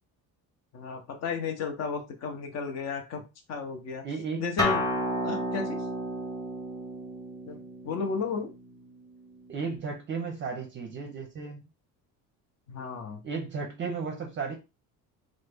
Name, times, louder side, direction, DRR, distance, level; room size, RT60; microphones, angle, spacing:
voice 1, 0.7-3.2 3.5-4.1 4.4-4.8 5.2-5.9 7.5-8.5 12.7-13.2, left 5 dB, 45° left, 5 dB, 0.8 m, -33 dB
voice 2, 4.0-4.4 9.5-11.7 13.2-14.6, right 5 dB, 35° right, 2 dB, 0.6 m, -34 dB
Acoustic guitar, 4.6-9.8, left 1 dB, 10° left, 0.6 m, -32 dB
3.1 x 2.0 x 3.4 m, 0.28 s
cardioid pair, 150°, 36 cm